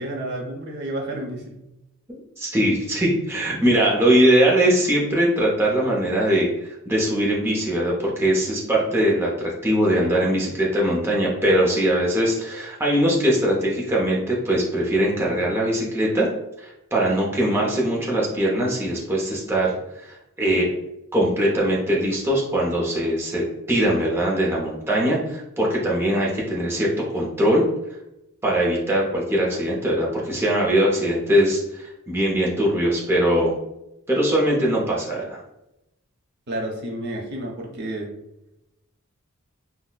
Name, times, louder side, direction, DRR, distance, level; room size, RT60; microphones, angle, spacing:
voice 1, 0.0-1.6 36.5-38.2, right 1 dB, 55° right, 0 dB, 0.7 m, -30 dB
voice 2, 2.1-16.3 16.6-20.7 21.1-27.6 28.4-33.5 34.1-35.4, right 1 dB, 10° right, -4 dB, 0.5 m, -21 dB
4.0 x 2.0 x 2.2 m, 0.89 s
head